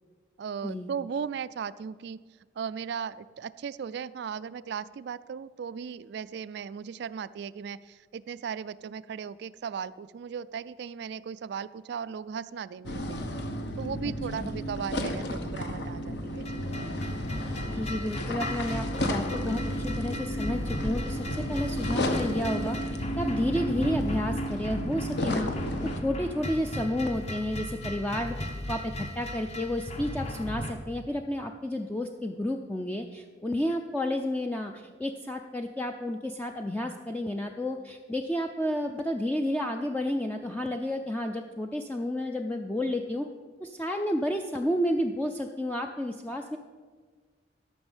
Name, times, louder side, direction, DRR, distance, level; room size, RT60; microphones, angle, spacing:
voice 1, 0.4-2.2 2.6-13.2 13.8-16.6, right 7 dB, 60° right, 16 dB, 0.3 m, -37 dB
sound 1, 12.8-26.0, equal, 60° left, 1.0 m, -32 dB
sound 2, 16.4-30.7, left 1 dB, 35° left, 0.9 m, -36 dB
voice 2, 17.7-22.8 23.2-25.5 25.8-28.4 28.7-43.3 43.6-46.6, left 1 dB, 10° left, 4 dB, 0.4 m, -31 dB
13.0 x 6.1 x 7.3 m, 1.5 s
head